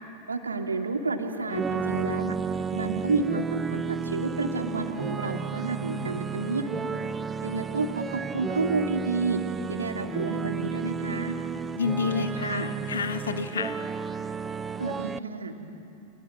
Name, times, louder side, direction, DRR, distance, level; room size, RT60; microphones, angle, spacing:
voice 1, 0.3-2.3 2.7-6.7 7.4-9.4 9.7-11.3 12.2-12.7 14.8-15.5, right 3 dB, 75° right, 4 dB, 2.4 m, -30 dB
sound 1, 1.5-15.2, right 5 dB, 15° right, 0.6 m, -33 dB
voice 2, 11.7-13.9, left 6 dB, 70° left, 10 dB, 1.4 m, -29 dB
29.0 x 26.0 x 7.8 m, 2.9 s
figure-of-eight pair, 90°, 0 cm